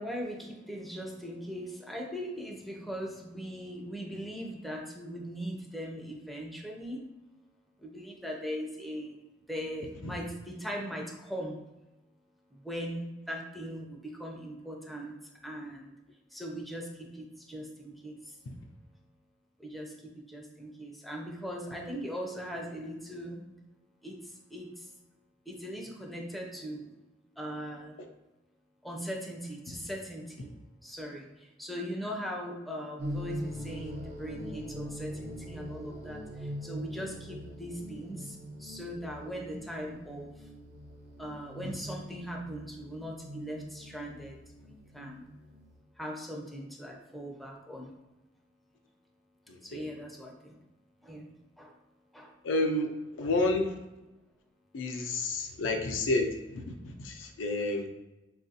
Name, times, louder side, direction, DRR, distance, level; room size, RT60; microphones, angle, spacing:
voice 1, 0.0-7.0 7.8-9.2 9.5-11.6 12.5-15.1 15.4-15.9 16.3-18.4 19.6-23.5 24.0-24.9 25.5-26.9 27.4-28.0 28.8-30.5 30.8-40.5 41.2-45.3 46.0-47.9 49.6-50.6 51.0-51.8 52.1-52.4, equal, ahead, -1 dB, 0.4 m, -40 dB
sound 1, 33.0-45.8, equal, 55° right, 0.5 m, -43 dB
voice 2, 49.5-49.8 52.4-52.9 53.1-53.7 54.7-57.9, left 2 dB, 85° left, 4 dB, 0.4 m, -30 dB
3.6 x 2.4 x 2.7 m, 1.0 s
head